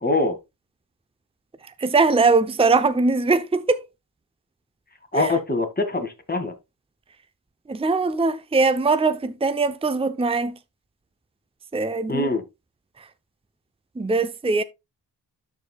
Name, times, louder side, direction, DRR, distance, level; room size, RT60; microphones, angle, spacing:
voice 1, 0.0-0.4 5.1-6.5 12.1-12.4, left 2 dB, 20° left, 2.2 m, -23 dB
voice 2, 1.6-3.8 5.1-5.3 7.7-10.6 11.7-12.3 13.0-13.1 14.0-14.6, right 3 dB, 15° right, 0.7 m, -21 dB
12.5 x 4.9 x 2.3 m
cardioid pair, 70°, 42 cm